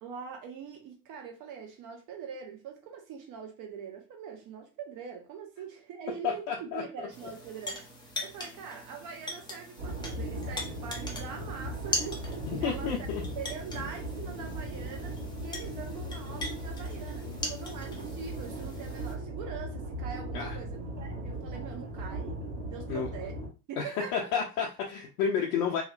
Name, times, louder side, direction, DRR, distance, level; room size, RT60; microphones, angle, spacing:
voice 1, 0.0-7.9 8.2-12.3 12.6-13.1 13.4-23.4 23.7-24.3, right 6 dB, 40° right, 0.9 m, -43 dB
voice 2, 6.2-7.1 12.5-13.2 20.3-20.6 22.9-23.1 23.8-25.8, left 7 dB, 60° left, 0.6 m, -31 dB
sound 1, 7.1-19.1, left 2 dB, 10° left, 0.5 m, -41 dB
sound 2, 9.8-23.5, right 1 dB, 70° right, 1.4 m, -38 dB
2.8 x 2.1 x 2.4 m
hypercardioid pair, 80°, 47 cm